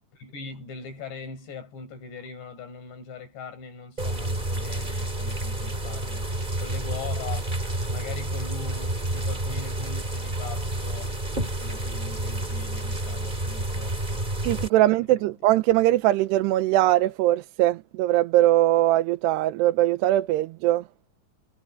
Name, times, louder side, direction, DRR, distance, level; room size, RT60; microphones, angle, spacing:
voice 1, 0.1-6.3 6.6-7.6 7.9-11.1 11.6-14.2 14.8-15.3, left 5 dB, 90° left, 9.5 m, -41 dB
sound 1, 4.0-14.7, right 1 dB, 10° right, 3.1 m, -29 dB
voice 2, 14.4-20.8, right 15 dB, 85° right, 2.9 m, -21 dB
omnidirectional pair, 4.8 m